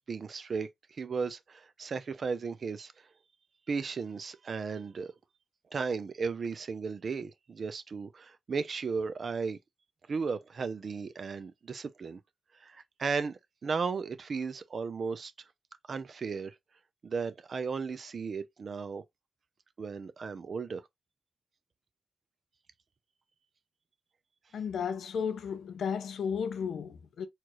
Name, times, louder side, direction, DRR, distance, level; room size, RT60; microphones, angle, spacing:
voice 1, 0.1-2.9 3.7-5.1 5.7-9.6 10.1-12.2 12.6-15.3 15.9-16.5 17.0-19.0 19.8-20.8, right 5 dB, 65° right, 0.5 m, -35 dB
voice 2, 24.5-27.3, left 7 dB, 85° left, 0.6 m, -34 dB
4.4 x 2.5 x 3.0 m
cardioid pair, 50°, 0 cm